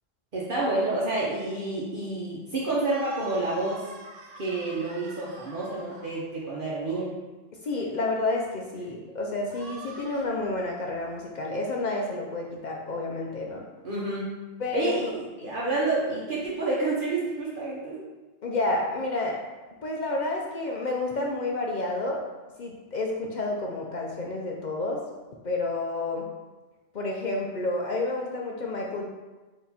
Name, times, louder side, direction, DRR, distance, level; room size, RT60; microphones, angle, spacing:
voice 1, 0.3-3.8 4.4-7.1 13.8-14.3 14.7-18.1, right 2 dB, 50° right, -6 dB, 0.9 m, -29 dB
sound 1, 2.8-6.2 9.4-10.3, right 3 dB, 90° right, 1.1 m, -45 dB
voice 2, 7.6-13.6 14.6-15.5 18.4-19.4 19.8-22.2 22.6-25.0 25.4-26.2 26.9-29.0, left 2 dB, 55° left, -1 dB, 0.5 m, -30 dB
4.4 x 2.9 x 4.1 m, 1.2 s
omnidirectional pair, 1.3 m